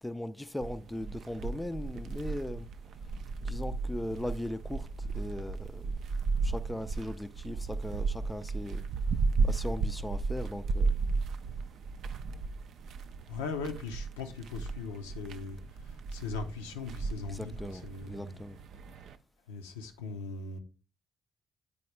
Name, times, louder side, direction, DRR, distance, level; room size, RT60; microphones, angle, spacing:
voice 1, 0.0-2.7 3.4-5.9 6.4-8.9 9.4-11.0 17.3-18.6, left 1 dB, 10° left, 0.4 m, -39 dB
sound 1, 0.6-19.2, right 4 dB, 55° right, 0.4 m, -34 dB
voice 2, 13.3-18.3 19.5-20.6, left 4 dB, 75° left, 0.6 m, -39 dB
8.5 x 4.2 x 3.2 m
figure-of-eight pair, 45°, 0 cm